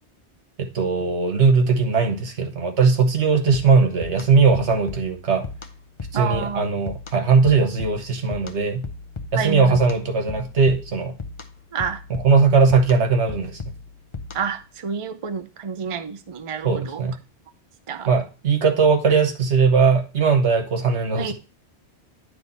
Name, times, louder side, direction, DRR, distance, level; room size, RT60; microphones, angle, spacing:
voice 1, 0.6-5.5 6.1-8.8 9.3-11.1 12.2-13.6 16.6-17.1 18.1-21.3, right 5 dB, 75° right, 1.5 m, -19 dB
sound 1, 3.5-14.7, left 4 dB, 30° left, 0.7 m, -37 dB
voice 2, 6.1-6.7 9.3-9.8 11.7-12.0 14.3-17.0 17.9-18.1 21.2-21.3, right 6 dB, 35° right, 0.5 m, -28 dB
10.5 x 3.4 x 4.0 m
omnidirectional pair, 1.2 m